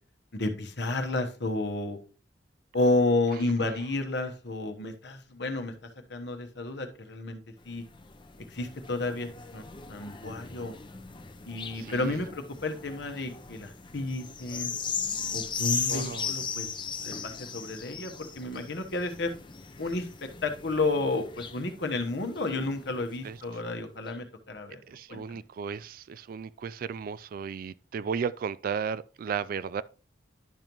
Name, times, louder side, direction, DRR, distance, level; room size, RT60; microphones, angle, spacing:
voice 1, 0.3-2.0 2.7-5.7 6.1-7.4 7.6-7.8 8.5-9.6 9.9-10.7 11.5-14.7 15.3-16.7 17.0-19.3 19.8-24.8 25.1-25.2, left 2 dB, 65° left, 1.1 m, -31 dB
sound 1, 7.6-23.4 24.1-24.2, left 6 dB, 25° left, 0.7 m, -38 dB
voice 2, 11.7-12.2 15.9-16.3 23.2-23.4 24.9-29.8, right 6 dB, 50° right, 0.3 m, -35 dB
10.5 x 5.3 x 3.0 m
head